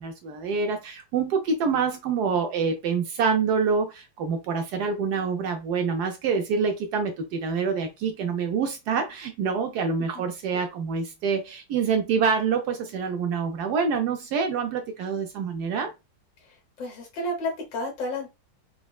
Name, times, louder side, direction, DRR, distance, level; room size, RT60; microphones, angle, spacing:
voice 1, 0.0-15.9, right 5 dB, 70° right, 1.0 m, -26 dB
voice 2, 16.4-18.3, left 1 dB, 80° left, 1.8 m, -32 dB
4.1 x 2.1 x 2.3 m
omnidirectional pair, 2.0 m